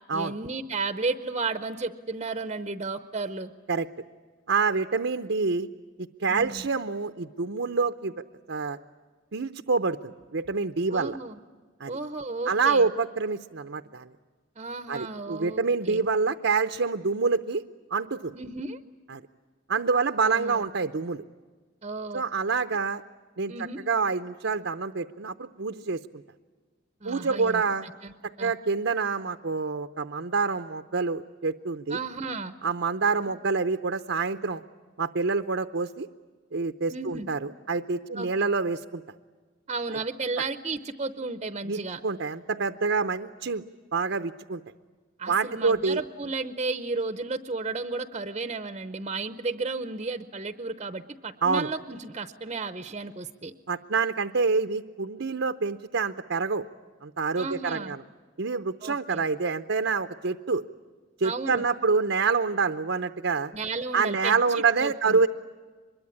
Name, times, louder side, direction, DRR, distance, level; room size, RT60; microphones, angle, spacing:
voice 1, 0.1-3.5 6.3-6.6 10.9-11.4 11.9-12.8 14.6-16.0 18.3-18.8 20.2-20.7 21.8-22.2 23.5-23.8 27.0-28.1 28.4-28.5 31.9-32.5 36.9-37.3 38.1-38.5 39.7-42.0 45.2-53.5 57.4-57.9 58.8-59.2 61.2-61.7 63.5-65.2, right 3 dB, 30° right, 11 dB, 0.8 m, -33 dB
voice 2, 4.5-5.7 6.0-8.8 9.3-11.2 11.8-12.0 12.5-14.1 14.9-17.6 17.9-18.3 19.1-19.2 19.7-21.2 22.1-23.0 23.4-23.5 23.9-26.2 27.0-27.9 28.4-32.0 32.6-34.6 35.0-36.1 36.5-39.0 41.7-43.6 43.9-44.6 45.3-46.0 51.4-51.7 53.7-56.6 57.0-58.0 58.4-60.6 61.2-63.5 63.9-65.3, right 4 dB, 65° right, 8 dB, 0.7 m, -27 dB
24.5 x 22.0 x 9.7 m, 1.4 s
head